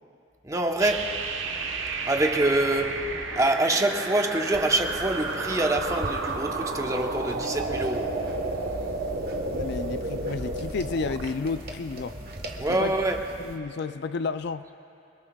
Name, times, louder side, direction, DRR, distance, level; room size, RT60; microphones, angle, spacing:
voice 1, 0.4-1.2 2.1-8.1 12.6-13.2, right 1 dB, 20° right, 3 dB, 0.9 m, -25 dB
sound 1, 0.8-11.3, right 3 dB, 90° right, 1.1 m, -32 dB
sound 2, 4.5-13.6, equal, 55° right, 1.3 m, -40 dB
voice 2, 9.5-12.2 12.7-12.9 13.4-14.7, left 4 dB, 60° left, 12 dB, 0.4 m, -31 dB
27.0 x 21.5 x 2.3 m, 2.7 s
head